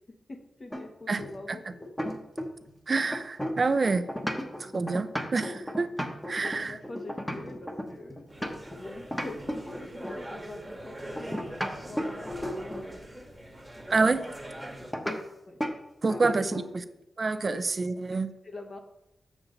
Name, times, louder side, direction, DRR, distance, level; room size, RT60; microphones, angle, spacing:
voice 1, 0.3-1.9 6.4-8.3 8.8-13.0 15.5-15.6 16.1-17.0 17.4-17.6 17.9-18.8, left 2 dB, 45° left, 4 dB, 1.3 m, -45 dB
sound 1, 0.7-2.7 3.0-8.8 9.1-10.3 11.2-12.9 14.9-15.2 15.6-15.8 16.1-16.7, equal, 10° left, 1.1 m, -34 dB
voice 2, 2.9-4.0 4.6-5.9 6.3-6.8 13.9-14.3 16.0-16.8 17.2-18.3, right 3 dB, 45° right, 11 dB, 0.5 m, -27 dB
sound 2, 8.3-14.9, right 1 dB, 10° right, 1.3 m, -42 dB
7.1 x 7.1 x 3.9 m, 0.84 s
cardioid pair, 75°, 0 cm